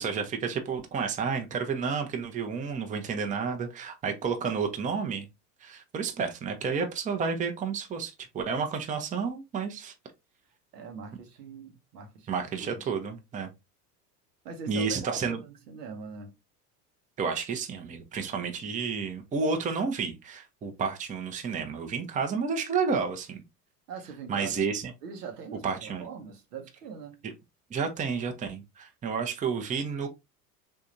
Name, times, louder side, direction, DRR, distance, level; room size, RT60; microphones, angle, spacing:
voice 1, 0.0-5.3 5.6-9.9 12.3-13.5 14.7-15.4 17.2-23.4 24.3-24.9 25.6-26.0 27.2-27.3 27.7-30.1, right 5 dB, 15° right, 0.6 m, -31 dB
voice 2, 10.7-12.7 14.4-16.3 23.9-24.6 25.0-27.2, right 5 dB, 80° right, 0.9 m, -42 dB
3.4 x 2.7 x 2.5 m
hypercardioid pair, 85°, 47 cm